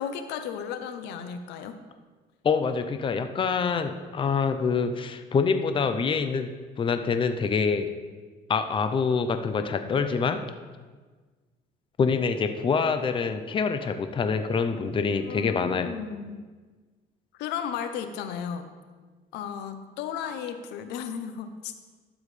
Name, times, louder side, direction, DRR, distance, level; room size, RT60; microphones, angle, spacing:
voice 1, 0.0-1.8 15.2-16.5 17.4-18.8 19.3-21.7, left 8 dB, 90° left, 9 dB, 0.7 m, -34 dB
voice 2, 2.4-6.5 6.8-7.9 8.5-10.4 12.0-15.9, left 5 dB, 30° left, 8 dB, 0.6 m, -26 dB
12.5 x 7.1 x 3.3 m, 1.4 s
cardioid pair, 110°, 17 cm